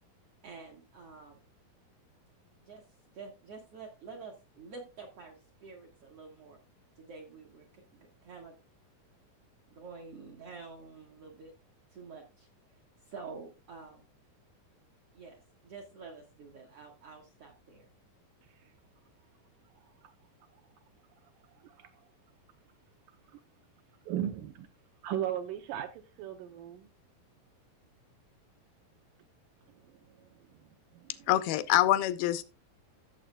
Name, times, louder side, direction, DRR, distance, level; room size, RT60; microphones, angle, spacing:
voice 1, 0.4-1.4 2.6-2.8 3.1-6.6 7.0-8.5 9.7-11.5 11.9-12.5 13.1-14.1 15.1-17.9, right 4 dB, 65° right, 1.5 m, -48 dB
voice 2, 19.7-20.1 21.6-21.9 23.3-23.4 24.1-24.7 25.0-26.9 29.9-30.5 30.9-31.3, right 11 dB, 80° right, 1.9 m, -38 dB
voice 3, 31.3-32.4, left 14 dB, 85° left, 2.5 m, -25 dB
14.5 x 7.2 x 2.2 m
omnidirectional pair, 4.2 m